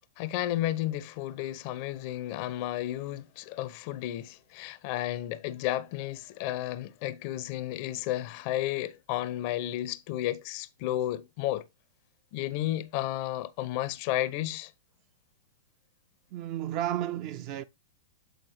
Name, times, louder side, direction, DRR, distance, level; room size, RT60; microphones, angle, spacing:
voice 1, 0.2-11.6 12.3-14.7, left 14 dB, 45° left, 0.5 m, -32 dB
voice 2, 16.3-17.6, right 12 dB, 40° right, 0.4 m, -32 dB
7.8 x 4.3 x 3.1 m
figure-of-eight pair, 100°, 0 cm